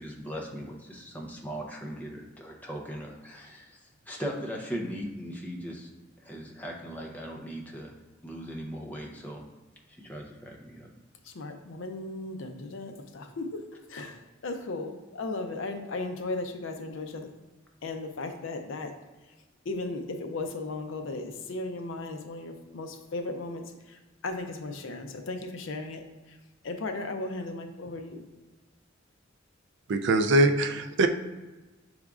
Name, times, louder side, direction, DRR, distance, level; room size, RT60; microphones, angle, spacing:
voice 1, 0.0-3.8 4.1-5.9 6.2-7.9 8.2-9.5 10.0-10.9, equal, 10° left, -1 dB, 0.6 m, -38 dB
voice 2, 11.4-13.6 13.9-14.2 14.4-17.3 17.8-18.9 19.7-23.6 24.2-26.0 26.6-28.2, left 2 dB, 70° left, 5 dB, 0.5 m, -36 dB
voice 3, 29.9-31.1, right 2 dB, 60° right, 7 dB, 0.3 m, -22 dB
6.2 x 3.5 x 2.4 m, 1.2 s
head